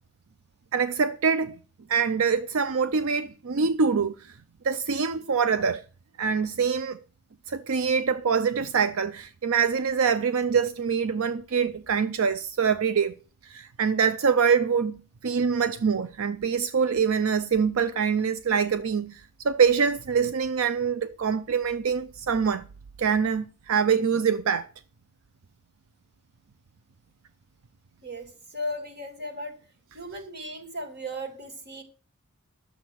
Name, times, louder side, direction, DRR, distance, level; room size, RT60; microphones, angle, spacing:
voice 1, 0.7-1.6 1.9-4.1 4.6-5.8 6.2-7.0 7.5-13.1 13.4-22.7 23.0-24.7, right 6 dB, 70° right, 0.5 m, -24 dB
voice 2, 28.0-29.5 29.9-31.8, equal, 45° right, 3.0 m, -36 dB
11.5 x 7.2 x 6.1 m
head